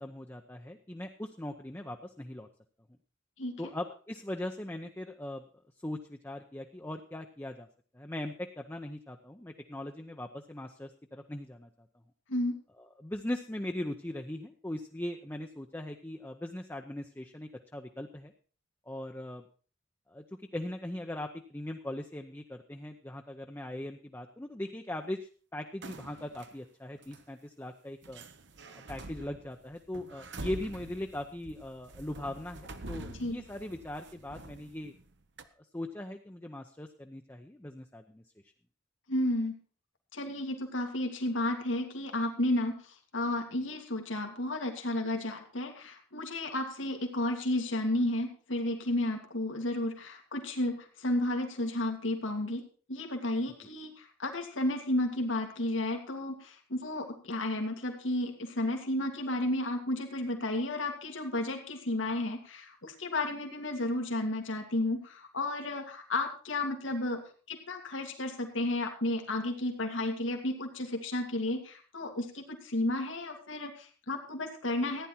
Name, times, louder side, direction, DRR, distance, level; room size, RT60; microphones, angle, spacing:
voice 1, 0.0-2.5 3.6-5.4 5.8-7.7 7.9-11.7 12.8-18.3 18.9-19.4 20.1-28.2 28.7-34.9 35.7-38.2, left 1 dB, 10° left, 3 dB, 0.7 m, -40 dB
sound 1, 25.8-26.5 27.0-27.2 28.0-35.1 35.4-35.5, right 2 dB, 60° right, 1.0 m, -46 dB
voice 2, 39.1-39.6 40.1-67.2 67.5-75.1, left 1 dB, 85° left, 3 dB, 2.2 m, -32 dB
15.0 x 10.0 x 4.3 m, 0.39 s
head